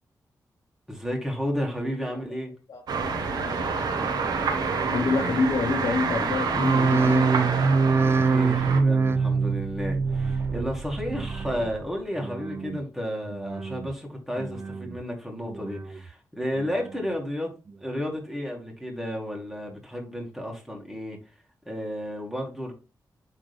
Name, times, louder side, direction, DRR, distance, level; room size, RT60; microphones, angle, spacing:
voice 1, 0.9-2.5 7.9-17.5 17.8-21.2 21.7-22.7, equal, ahead, 2.2 m, -32 dB
sound 1, 2.9-8.8, right 4 dB, 90° right, 1.4 m, -27 dB
voice 2, 4.8-7.3, left 4 dB, 70° left, 1.0 m, -26 dB
sound 2, 6.5-11.9 12.2-12.8 13.3-13.9 14.4-15.0 15.4-16.1 16.6-17.1 17.7-17.8, right 4 dB, 35° right, 0.4 m, -25 dB
8.6 x 3.6 x 3.6 m
cardioid pair, 90°, 7 cm